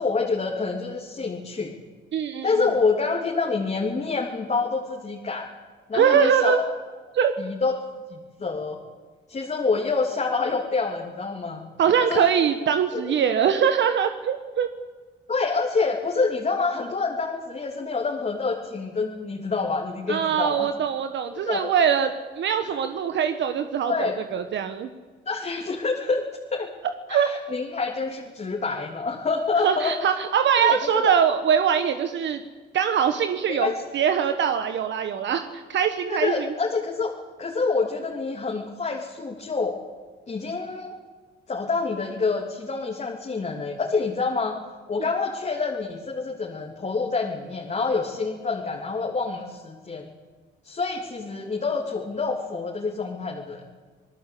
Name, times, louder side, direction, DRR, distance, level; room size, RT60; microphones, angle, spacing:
voice 1, 0.0-1.8 2.4-5.5 5.9-6.6 7.4-7.7 8.1-8.8 9.3-11.7 12.0-12.3 12.9-13.1 13.5-13.6 15.3-20.7 21.3-21.7 23.9-24.2 25.2-26.2 26.5-26.7 27.1-29.9 30.6-31.1 33.5-33.7 36.1-37.1 37.4-39.8 40.3-40.9 41.5-44.6 44.9-50.1 50.6-53.6, left 4 dB, 35° left, -1 dB, 3.2 m, -27 dB
voice 2, 2.1-2.5 5.9-6.6 7.1-7.3 11.8-14.7 20.1-24.9 27.1-27.3 29.6-32.4 32.7-36.5, right 8 dB, 65° right, 8 dB, 1.4 m, -22 dB
28.0 x 19.0 x 8.5 m, 1.5 s
cardioid pair, 90°, 20 cm